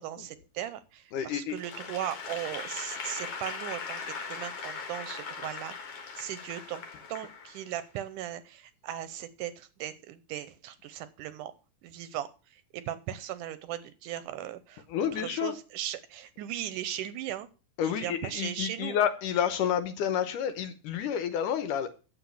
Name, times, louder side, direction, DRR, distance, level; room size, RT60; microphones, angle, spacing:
voice 1, 0.0-6.8 7.1-11.5 11.8-14.9 15.1-17.5 17.8-19.0, right 11 dB, 75° right, 14 dB, 2.1 m, -38 dB
voice 2, 1.1-1.6 14.9-15.5 17.8-21.9, left 9 dB, 70° left, 11 dB, 2.4 m, -29 dB
Applause / Crowd, 1.6-8.0, left 5 dB, 55° left, 2.1 m, -39 dB
10.0 x 7.5 x 7.2 m, 0.34 s
omnidirectional pair, 4.0 m